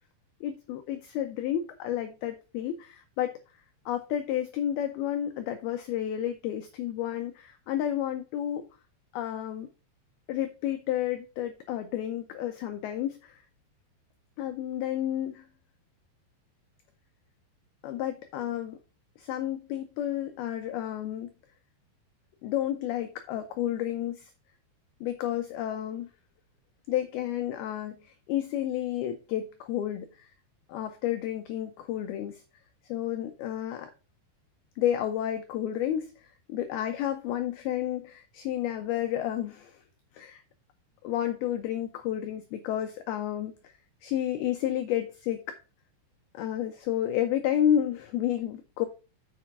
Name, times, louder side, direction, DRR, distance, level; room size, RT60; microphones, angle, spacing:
voice 1, 0.4-3.4 3.9-8.6 9.1-9.7 10.3-13.4 14.4-15.4 17.8-18.8 19.2-21.3 22.4-24.3 25.0-26.1 26.9-28.0 28.3-30.3 30.7-32.4 32.9-33.9 34.8-36.1 36.5-39.7 40.2-40.4 41.0-43.5 44.0-45.6 46.3-48.9, left 11 dB, 90° left, 7 dB, 2.2 m, -31 dB
7.3 x 5.9 x 4.6 m, 0.32 s
omnidirectional pair, 5.3 m